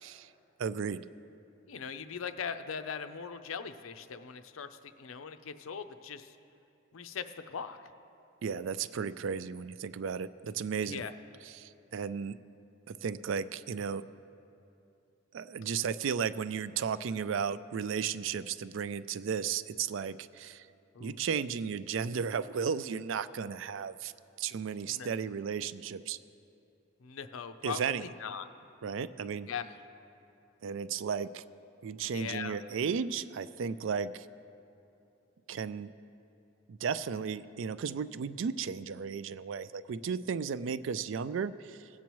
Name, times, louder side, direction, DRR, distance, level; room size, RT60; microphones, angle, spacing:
voice 1, 0.6-1.0 8.4-11.0 11.5-12.4 12.9-14.0 15.3-20.7 21.0-24.1 24.4-26.2 27.6-28.1 28.8-29.5 30.6-31.4 31.8-34.3 35.5-35.9 36.7-41.9, right 6 dB, 70° right, 15 dB, 0.4 m, -34 dB
voice 2, 1.7-6.4 6.9-7.8 10.8-11.1 20.9-21.1 24.9-25.1 27.0-28.5 29.5-29.7 32.1-32.6, left 6 dB, 85° left, 10 dB, 0.6 m, -40 dB
21.0 x 8.4 x 3.1 m, 2.8 s
head